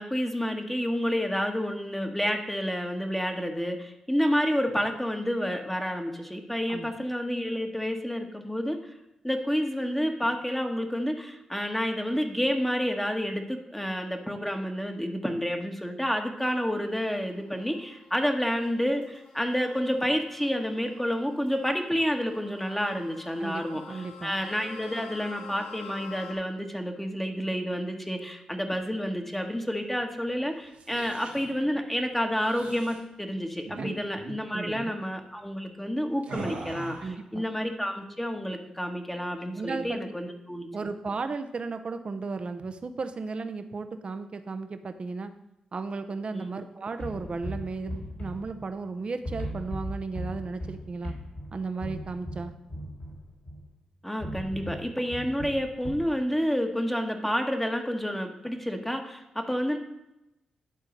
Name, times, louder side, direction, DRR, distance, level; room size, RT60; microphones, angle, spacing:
voice 1, 0.0-8.8 9.2-40.7 46.3-46.5 54.0-59.8, equal, 10° left, 4 dB, 1.3 m, -29 dB
sound 1, 16.6-26.3, left 6 dB, 85° left, 1.9 m, -49 dB
voice 2, 23.4-24.4 33.8-34.0 34.5-34.9 37.0-37.5 39.5-40.0 40.7-45.3 45.7-51.1 51.5-52.5, right 4 dB, 50° right, 9 dB, 0.8 m, -35 dB
sound 2, 30.6-31.5 32.4-33.0 33.6-33.9 34.1-34.4 34.7-34.9 36.2-37.2, right 3 dB, 90° right, 1.6 m, -40 dB
sound 3, 47.0-48.9 49.2-53.7 54.2-56.1, equal, 60° left, 3.4 m, -38 dB
11.0 x 3.8 x 5.2 m, 0.89 s
supercardioid pair, 50°, 2 cm